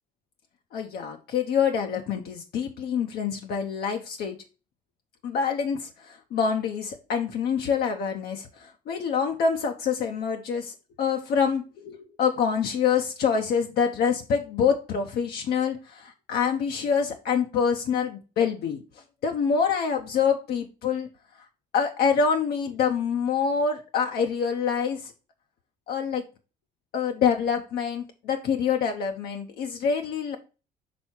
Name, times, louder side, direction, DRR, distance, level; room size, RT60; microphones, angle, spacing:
voice 1, 0.7-4.4 5.2-18.8 19.2-21.1 21.7-25.1 25.9-26.2 26.9-30.4, left 6 dB, 70° left, 3 dB, 0.8 m, -26 dB
6.2 x 3.5 x 4.4 m, 0.32 s
cardioid pair, 110°, 17 cm